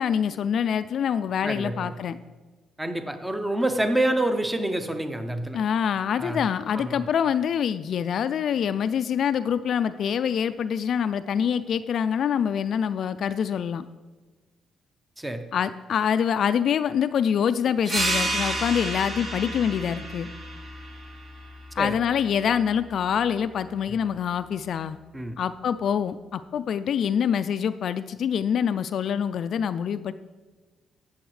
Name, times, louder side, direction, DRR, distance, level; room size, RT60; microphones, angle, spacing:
voice 1, 0.0-2.2 5.5-13.8 15.5-20.3 21.8-25.0 25.4-30.1, left 8 dB, 65° left, 12 dB, 0.3 m, -25 dB
voice 2, 1.4-1.9 2.8-5.6 6.2-6.4 6.7-7.0 15.2-15.4 21.8-21.9 25.1-25.4, right 1 dB, 10° right, 8 dB, 0.8 m, -27 dB
sound 1, 17.8-23.0, right 1 dB, 45° right, 3.0 m, -31 dB
17.0 x 7.0 x 3.3 m, 1.3 s
cardioid pair, 90°, 0 cm